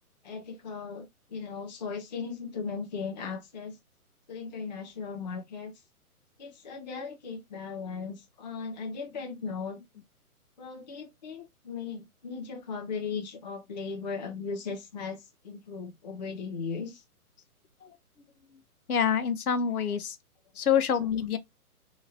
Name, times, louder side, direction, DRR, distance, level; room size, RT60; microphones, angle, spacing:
voice 1, 0.2-3.8 4.3-5.7 6.4-9.8 10.6-17.0, left 5 dB, 30° left, 0.4 m, -37 dB
voice 2, 18.9-20.2 20.6-21.4, left 8 dB, 75° left, 0.7 m, -26 dB
2.8 x 2.5 x 2.6 m
hypercardioid pair, 145°, 45 cm